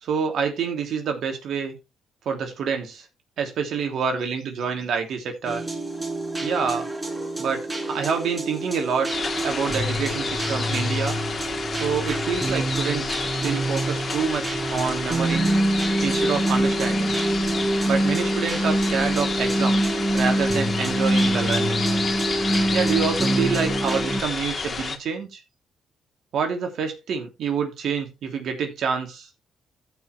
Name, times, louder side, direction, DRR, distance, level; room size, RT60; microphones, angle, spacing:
voice 1, 0.0-1.8 2.2-3.1 3.4-5.6 6.4-6.9 7.4-9.1 9.4-11.2 11.8-15.5 16.0-17.1 17.8-21.8 22.7-25.4 26.3-29.3, right 6 dB, 70° right, 2.9 m, -27 dB
sound 1, 5.5-24.2, right 1 dB, 15° right, 4.7 m, -25 dB
sound 2, 9.1-25.0, left 4 dB, 35° left, 2.0 m, -30 dB
14.5 x 6.0 x 3.2 m
cardioid pair, 90°, 0 cm